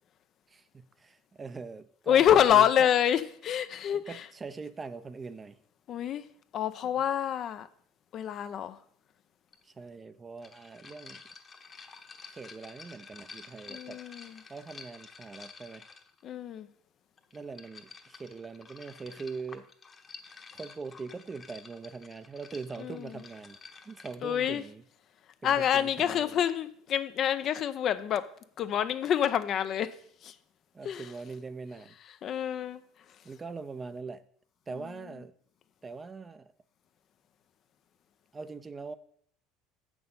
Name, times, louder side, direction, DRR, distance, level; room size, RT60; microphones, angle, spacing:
voice 1, 0.5-2.9 3.9-5.6 9.6-11.2 12.3-14.0 14.5-15.9 17.3-19.7 20.5-23.6 23.8-24.8 25.4-26.4 30.7-32.0 33.2-34.2 34.7-35.3 35.8-36.5 38.3-38.9, right 4 dB, 25° right, 12 dB, 0.6 m, -42 dB
voice 2, 2.1-4.2 5.9-6.2 6.5-7.7 8.1-8.8 13.7-14.4 16.2-16.7 22.8-23.1 24.2-24.6 25.4-28.3 28.6-30.0 30.2-30.3 30.8-31.1 32.2-32.8, left 9 dB, 50° left, 12 dB, 0.6 m, -27 dB
sound 1, 9.5-9.6 10.4-16.2 17.2-24.1, left 4 dB, 30° left, 1.1 m, -50 dB
7.7 x 6.1 x 5.4 m, 0.63 s
hypercardioid pair, 80°, 0 cm